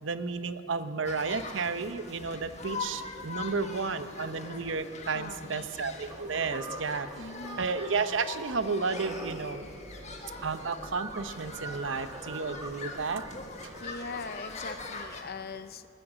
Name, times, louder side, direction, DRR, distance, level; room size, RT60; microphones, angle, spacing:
voice 1, 0.0-7.1 7.6-9.7 10.4-13.2, right 4 dB, 80° right, 12 dB, 0.8 m, -32 dB
sound 1, 1.0-15.2, left 3 dB, 35° left, 1.6 m, -43 dB
voice 2, 5.1-5.7 7.2-7.7 13.8-15.9, left 4 dB, 55° left, 11 dB, 0.6 m, -41 dB
sound 2, 6.1-14.3, right 2 dB, 20° right, 1.3 m, -44 dB
19.5 x 9.9 x 7.4 m, 2.7 s
head